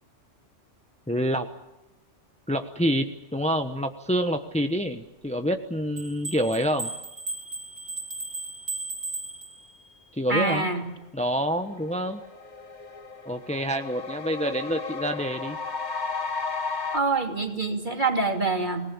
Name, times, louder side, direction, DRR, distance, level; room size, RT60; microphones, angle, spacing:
voice 1, 1.1-1.5 2.5-6.9 10.2-10.7 11.1-12.2 13.2-15.6, equal, 5° left, 6 dB, 1.2 m, -27 dB
sound 1, 6.0-9.9, right 2 dB, 75° right, 4.0 m, -36 dB
voice 2, 10.3-10.8 16.9-18.8, right 3 dB, 40° right, 4 dB, 3.2 m, -25 dB
sound 2, 11.2-11.3 11.6-17.0, left 4 dB, 40° left, 1.8 m, -34 dB
27.5 x 19.5 x 8.9 m, 0.94 s
omnidirectional pair, 1.2 m